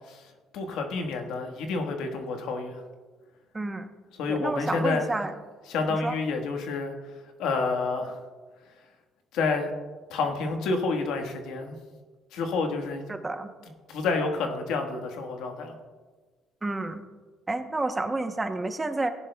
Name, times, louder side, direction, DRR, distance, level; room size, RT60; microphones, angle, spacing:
voice 1, 0.5-2.8 4.2-5.1 5.7-6.9 7.4-8.2 9.3-9.7 10.1-11.7 12.3-13.0 13.9-15.8, left 4 dB, 85° left, 4 dB, 1.4 m, -29 dB
voice 2, 3.5-3.9 4.3-5.3 5.9-6.2 13.1-13.5 16.6-17.0 17.5-19.1, right 2 dB, 20° right, 8 dB, 0.8 m, -30 dB
17.0 x 10.5 x 2.3 m, 1.4 s
cardioid pair, 105°, 0 cm